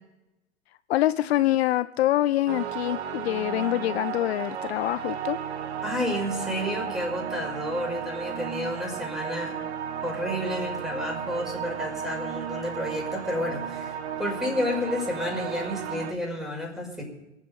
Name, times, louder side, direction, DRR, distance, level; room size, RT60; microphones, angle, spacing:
voice 1, 0.9-5.4, left 14 dB, 65° left, 16 dB, 0.5 m, -25 dB
sound 1, 2.5-16.1, right 8 dB, 65° right, 1.7 m, -34 dB
voice 2, 5.8-9.6 10.0-17.0, left 1 dB, ahead, 0 dB, 5.6 m, -31 dB
24.0 x 8.7 x 5.2 m, 1.0 s
hypercardioid pair, 100°, 35 cm